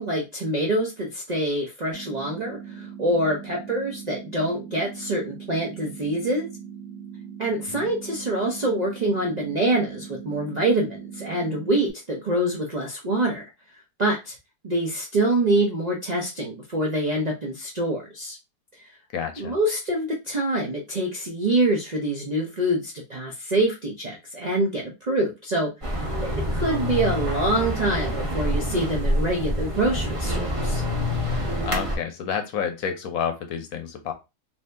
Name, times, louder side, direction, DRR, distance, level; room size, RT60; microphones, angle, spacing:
voice 1, 0.0-6.5 7.4-13.4 14.0-14.3 14.6-18.4 19.4-30.8, right 1 dB, 60° right, -1 dB, 0.4 m, -25 dB
sound 1, 1.9-11.9, right 7 dB, 75° right, 1.6 m, -40 dB
voice 2, 19.1-19.6 31.6-34.1, left 7 dB, 70° left, 6 dB, 1.0 m, -29 dB
sound 2, 25.8-32.0, left 1 dB, 30° right, 0.7 m, -26 dB
2.7 x 2.7 x 3.3 m, 0.25 s
omnidirectional pair, 1.7 m